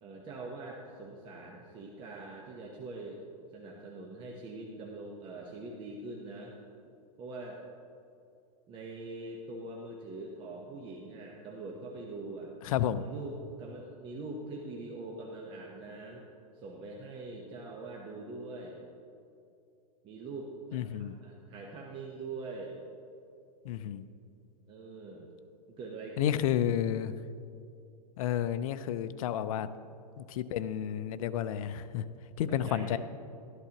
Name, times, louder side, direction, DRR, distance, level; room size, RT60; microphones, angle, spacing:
voice 1, 0.0-3.2 3.5-6.5 7.2-7.6 8.7-12.5 13.0-16.3 16.5-18.8 20.0-22.8 24.7-25.3 25.7-26.3 32.4-33.0, right 3 dB, 25° right, -1 dB, 1.0 m, -43 dB
voice 2, 12.7-13.0 20.7-21.2 23.7-24.0 26.2-27.1 28.2-29.7 30.2-32.0 32.4-33.0, left 10 dB, 60° left, 13 dB, 0.5 m, -31 dB
13.5 x 11.0 x 3.0 m, 2.6 s
hypercardioid pair, 145°, 20 cm